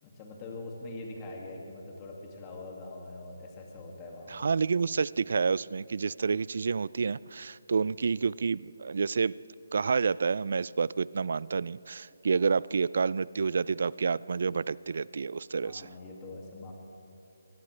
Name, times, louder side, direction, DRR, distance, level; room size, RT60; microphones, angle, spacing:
voice 1, 0.0-4.5 15.6-16.7, left 2 dB, 20° left, -1 dB, 2.2 m, -43 dB
voice 2, 4.3-9.4 9.7-15.9, right 5 dB, 55° right, 21 dB, 0.3 m, -29 dB
23.5 x 18.0 x 3.3 m, 2.9 s
hypercardioid pair, 160°, 0 cm